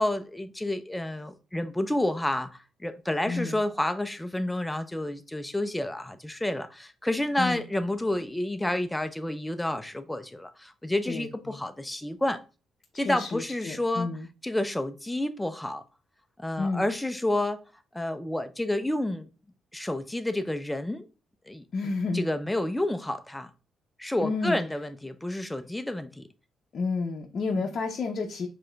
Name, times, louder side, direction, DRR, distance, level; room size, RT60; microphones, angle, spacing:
voice 1, 0.0-12.4 12.9-14.1 14.4-15.8 16.4-17.6 17.9-19.3 19.7-21.1 21.5-21.6 22.1-23.5 24.0-26.3 27.6-27.7, left 1 dB, 10° left, 0.5 m, -30 dB
voice 2, 3.3-3.6 7.4-7.6 11.1-11.6 12.9-14.3 16.6-16.9 21.7-22.2 24.2-24.6 26.7-28.5, left 4 dB, 50° left, 0.6 m, -30 dB
4.7 x 3.4 x 2.3 m
cardioid pair, 90°, 0 cm